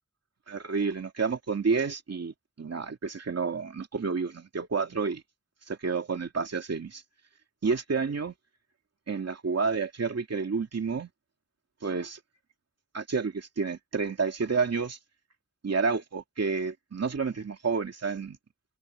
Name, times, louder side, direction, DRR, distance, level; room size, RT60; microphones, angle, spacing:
voice 1, 0.5-5.2 5.7-7.0 7.6-8.3 9.1-11.1 11.8-12.2 12.9-15.0 15.6-18.4, right 5 dB, 55° right, 2.5 m, -30 dB
wide cardioid pair, 100°, 30 cm